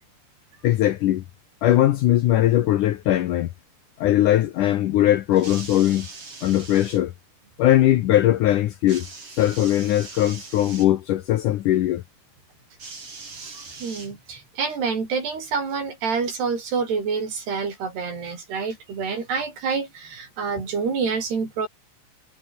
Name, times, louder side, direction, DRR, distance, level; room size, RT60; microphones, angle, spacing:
voice 1, 0.6-1.2 1.6-3.5 4.0-6.1 6.4-7.1 7.6-9.1 9.3-12.0, left 13 dB, 80° left, 1.8 m, -20 dB
sound 1, 5.3-7.0 8.9-10.9 12.8-14.5 15.5-15.6, right 4 dB, 35° right, 5.9 m, -41 dB
voice 2, 13.3-21.7, right 5 dB, 65° right, 7.7 m, -27 dB
omnidirectional pair, 5.0 m